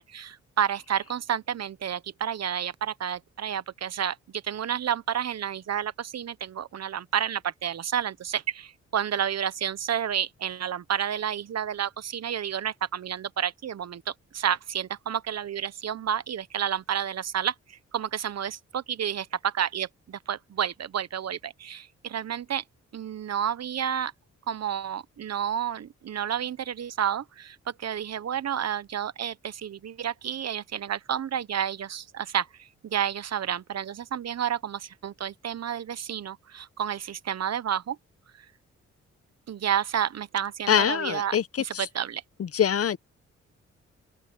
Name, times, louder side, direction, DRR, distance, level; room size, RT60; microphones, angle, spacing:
voice 1, 0.0-22.6 22.9-24.1 24.5-38.0 39.5-42.2, right 9 dB, 60° right, 1.1 m, -30 dB
voice 2, 40.7-41.9 42.4-43.0, left 9 dB, 55° left, 0.9 m, -24 dB
open air
cardioid pair, 55°, 29 cm